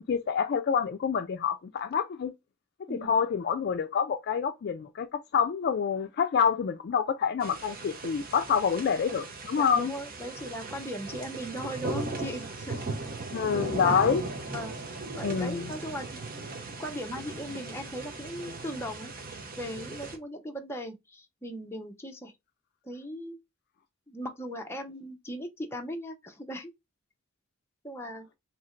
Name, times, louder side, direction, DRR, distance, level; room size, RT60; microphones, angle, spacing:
voice 1, 0.0-2.3 2.9-9.9 13.3-14.2 15.2-15.7, left 6 dB, 50° left, 0.3 m, -27 dB
sound 1, 7.4-20.2, right 3 dB, 45° right, 0.8 m, -38 dB
voice 2, 9.6-12.9 13.8-14.1 14.5-14.8 15.1-16.2 16.8-22.3 22.8-23.3 24.1-26.7 27.8-28.3, equal, 10° left, 0.6 m, -38 dB
2.8 x 2.5 x 4.3 m
head